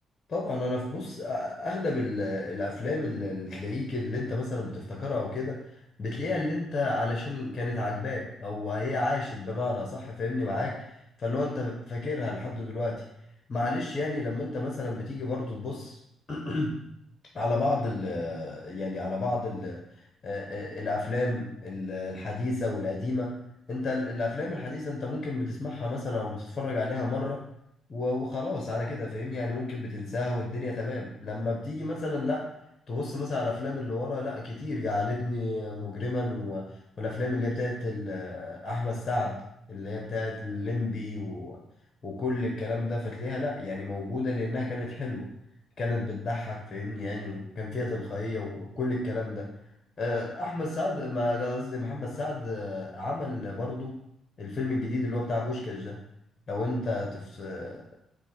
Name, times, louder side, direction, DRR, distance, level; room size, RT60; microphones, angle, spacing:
voice 1, 0.3-5.6 6.0-13.0 13.5-16.0 16.3-16.7 17.3-23.3 23.7-27.4 27.9-32.5 32.9-36.6 37.0-39.4 39.7-41.6 42.0-45.3 45.8-49.5 50.0-54.0 54.4-56.0 56.5-57.8, left 2 dB, 35° left, -1 dB, 0.8 m, -31 dB
4.5 x 2.5 x 4.2 m, 0.78 s
cardioid pair, 90°, 0 cm